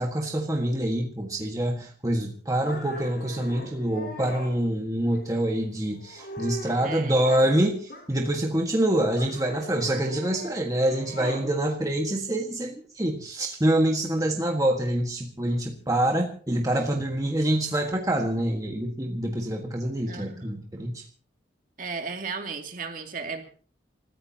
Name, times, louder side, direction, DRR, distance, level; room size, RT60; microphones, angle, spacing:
voice 1, 0.0-21.0, right 1 dB, 20° right, 1 dB, 1.6 m, -26 dB
sound 1, 2.6-4.5 5.1-5.6 6.0-7.6 7.9-8.6 9.2-11.5, equal, 55° left, 4.5 m, -41 dB
voice 2, 6.8-7.2 20.1-20.6 21.8-23.4, right 4 dB, 45° right, 4 dB, 2.5 m, -35 dB
28.5 x 14.5 x 2.9 m, 0.42 s
head